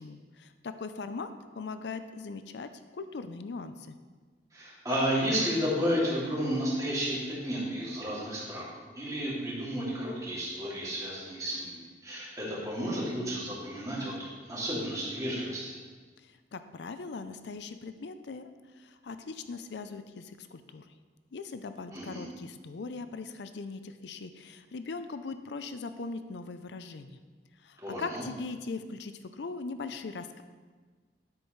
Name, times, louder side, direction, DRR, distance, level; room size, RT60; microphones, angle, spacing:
voice 1, 0.0-4.0 16.2-18.5 18.8-20.9 21.3-27.2 27.6-30.4, left 4 dB, 80° left, 10 dB, 0.5 m, -40 dB
voice 2, 4.5-15.7 21.9-22.3 27.8-28.2, equal, 20° right, -7 dB, 2.6 m, -32 dB
9.7 x 8.0 x 3.2 m, 1.4 s
head